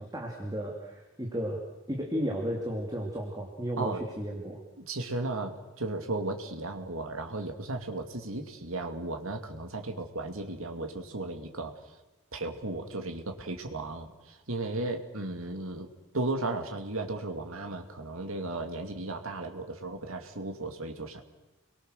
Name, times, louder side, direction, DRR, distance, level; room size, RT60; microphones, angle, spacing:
voice 1, 0.0-4.6, equal, 15° right, -1 dB, 2.9 m, -34 dB
voice 2, 4.8-11.7 12.3-21.2, right 2 dB, 70° right, 4 dB, 2.6 m, -35 dB
29.5 x 22.5 x 6.7 m, 1.1 s
head